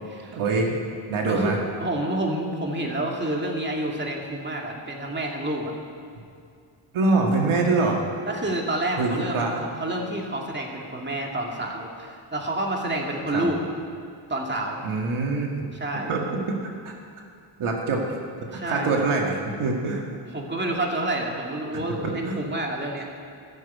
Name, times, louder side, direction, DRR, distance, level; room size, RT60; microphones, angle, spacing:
voice 1, 0.3-0.7 1.1-1.6 6.9-8.0 9.0-9.6 13.3-13.5 14.8-15.5 16.1-16.6 16.8-16.9 17.6-20.0 20.6-20.7 21.7-22.4, right 3 dB, 80° right, 0 dB, 2.0 m, -24 dB
voice 2, 1.8-5.7 8.3-13.6 14.3-14.8 15.8-16.1 18.5-18.9 20.3-23.0, right 1 dB, 20° right, 0 dB, 2.3 m, -29 dB
15.5 x 7.3 x 8.4 m, 2.3 s
cardioid pair, 85°, 49 cm